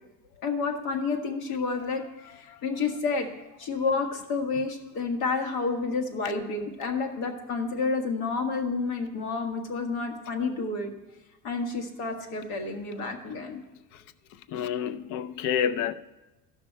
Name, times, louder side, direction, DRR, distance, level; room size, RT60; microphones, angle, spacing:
voice 1, 0.4-3.3 3.6-10.9 11.4-13.6, left 4 dB, 80° left, 1.7 m, -30 dB
voice 2, 14.5-15.9, left 8 dB, 55° left, 0.5 m, -28 dB
14.5 x 5.9 x 4.5 m
cardioid pair, 135°, 35 cm